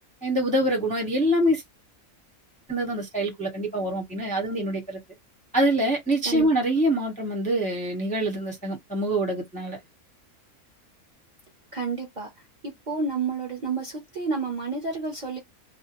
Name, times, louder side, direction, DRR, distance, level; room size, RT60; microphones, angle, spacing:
voice 1, 0.2-1.6 2.7-5.0 5.5-9.8, right 1 dB, 10° left, 0.5 m, -25 dB
voice 2, 11.7-12.3 12.6-15.4, right 4 dB, 40° right, 0.7 m, -30 dB
2.4 x 2.0 x 2.9 m
omnidirectional pair, 1.5 m